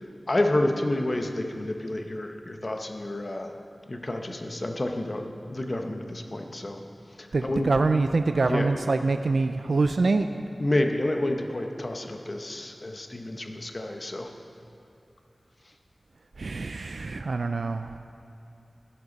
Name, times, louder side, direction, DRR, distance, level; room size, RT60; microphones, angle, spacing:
voice 1, 0.3-3.6 3.9-6.8 7.2-7.7 8.5-8.7 10.6-14.3, left 1 dB, 40° left, 4 dB, 1.0 m, -29 dB
voice 2, 7.3-10.3 16.4-17.9, right 3 dB, 75° right, 8 dB, 0.4 m, -25 dB
15.5 x 11.0 x 4.1 m, 2.8 s
wide cardioid pair, 85°, 0 cm